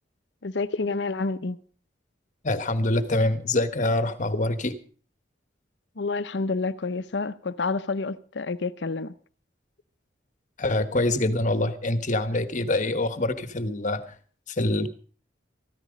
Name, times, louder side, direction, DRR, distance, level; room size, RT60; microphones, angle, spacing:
voice 1, 0.4-1.6 6.0-9.1, left 3 dB, 70° left, 0.7 m, -29 dB
voice 2, 2.4-4.7 10.6-14.1 14.6-14.9, left 2 dB, 45° left, 1.2 m, -25 dB
14.5 x 14.0 x 5.2 m
head